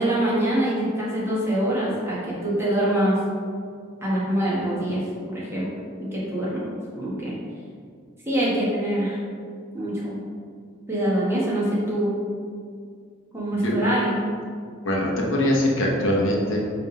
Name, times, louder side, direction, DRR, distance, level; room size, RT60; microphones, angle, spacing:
voice 1, 0.0-3.2 4.0-5.0 5.3-5.7 6.0-6.7 7.0-7.3 8.3-9.2 9.7-10.2 10.9-12.1 13.3-14.2, right 1 dB, 15° right, -7 dB, 1.4 m, -24 dB
voice 2, 14.8-16.6, left 1 dB, 80° left, -2 dB, 1.1 m, -22 dB
5.5 x 3.4 x 5.2 m, 2.1 s
head